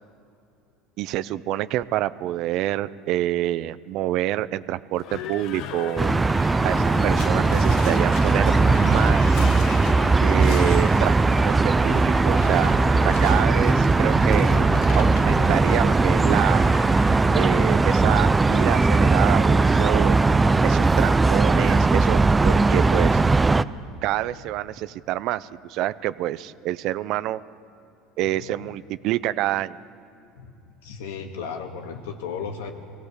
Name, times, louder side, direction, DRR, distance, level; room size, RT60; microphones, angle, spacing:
voice 1, 1.0-6.1 6.6-9.4 10.2-11.2 11.4-12.8 13.0-14.5 15.0-16.7 17.3-20.2 20.6-23.2 24.0-27.4 28.2-29.8, right 14 dB, 60° right, 16 dB, 0.6 m, -27 dB
Livestock farm animals working animals / Bell, 5.0-20.8, left 8 dB, 60° left, 1.2 m, -36 dB
sound 1, 6.0-23.6, right 3 dB, 15° right, 0.5 m, -19 dB
voice 2, 28.2-28.7 30.4-30.5 30.8-32.7, left 6 dB, 85° left, 4 dB, 2.1 m, -35 dB
22.0 x 17.5 x 8.2 m, 2.8 s
supercardioid pair, 100°, 0 cm